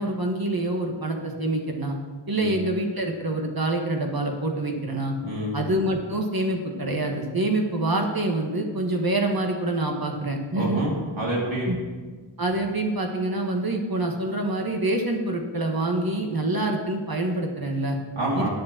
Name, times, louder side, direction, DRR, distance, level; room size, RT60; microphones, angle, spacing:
voice 1, 0.0-2.0 2.3-5.1 5.5-10.8 11.7-11.8 12.4-18.0 18.4-18.5, right 2 dB, 50° right, 2 dB, 1.4 m, -26 dB
voice 2, 5.2-5.6 10.5-11.7 18.2-18.5, right 1 dB, 90° right, -6 dB, 2.6 m, -27 dB
10.5 x 5.0 x 7.4 m, 1.4 s
wide cardioid pair, 50°, 46 cm